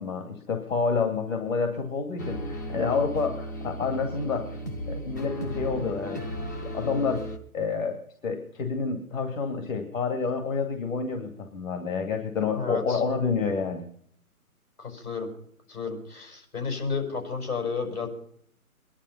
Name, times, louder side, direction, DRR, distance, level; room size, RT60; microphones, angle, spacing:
voice 1, 0.0-4.6 4.9-6.2 6.6-7.3 7.5-13.8, left 5 dB, 60° left, 4 dB, 2.4 m, -28 dB
sound 1, 2.2-7.4, equal, 15° left, 0.6 m, -35 dB
voice 2, 12.5-13.0 14.8-15.3 15.7-18.1, left 5 dB, 80° left, 2 dB, 5.8 m, -32 dB
22.5 x 11.5 x 5.6 m, 0.63 s
figure-of-eight pair, 140°, 44 cm